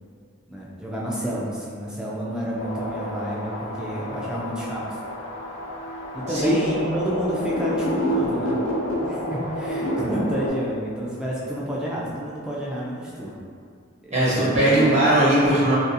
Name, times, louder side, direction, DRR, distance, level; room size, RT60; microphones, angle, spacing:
voice 1, 0.5-5.0 6.1-8.6 9.0-13.3 14.0-15.0, equal, 5° right, -6 dB, 0.3 m, -29 dB
sound 1, 2.6-10.5, equal, 70° left, 0.5 m, -29 dB
voice 2, 6.3-6.6 14.1-15.7, right 1 dB, 35° right, -9 dB, 0.8 m, -19 dB
2.5 x 2.4 x 2.6 m, 2.3 s
head